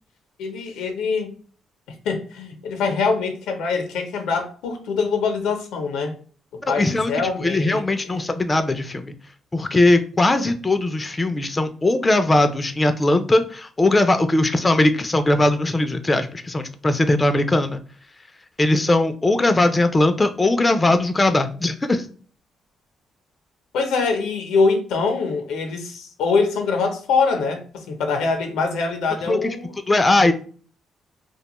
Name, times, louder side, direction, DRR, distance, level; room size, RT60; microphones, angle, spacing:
voice 1, 0.4-1.3 2.0-6.1 6.7-8.3 23.7-29.8, left 4 dB, 90° left, 0.5 m, -24 dB
voice 2, 6.7-7.1 7.4-9.1 9.5-17.8 18.6-22.1 29.3-29.5 29.9-30.3, left 2 dB, 20° left, 0.3 m, -19 dB
2.4 x 2.2 x 2.9 m
cardioid pair, 90°, 0 cm